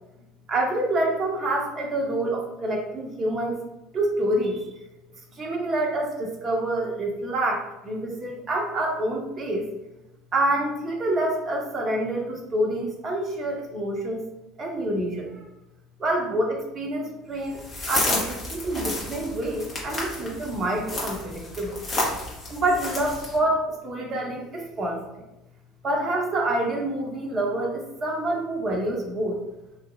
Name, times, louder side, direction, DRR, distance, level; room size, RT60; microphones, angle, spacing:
voice 1, 0.5-3.6 3.9-4.7 5.3-9.7 10.3-14.3 14.6-15.4 16.0-21.8 22.5-25.2 25.8-29.4, right 1 dB, 35° right, 0 dB, 0.6 m, -27 dB
sound 1, 17.5-23.4, left 2 dB, 35° left, 1.1 m, -31 dB
3.0 x 2.6 x 2.5 m, 0.95 s
figure-of-eight pair, 65°, 0 cm